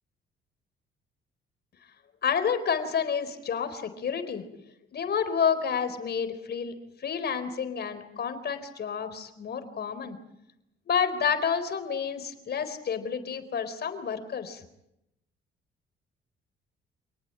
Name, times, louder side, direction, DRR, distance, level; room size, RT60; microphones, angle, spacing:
voice 1, 2.2-4.4 4.9-6.7 7.0-10.2 10.9-14.6, left 7 dB, 55° left, 10 dB, 4.2 m, -29 dB
27.5 x 19.0 x 9.1 m, 0.84 s
cardioid pair, 90°, 20 cm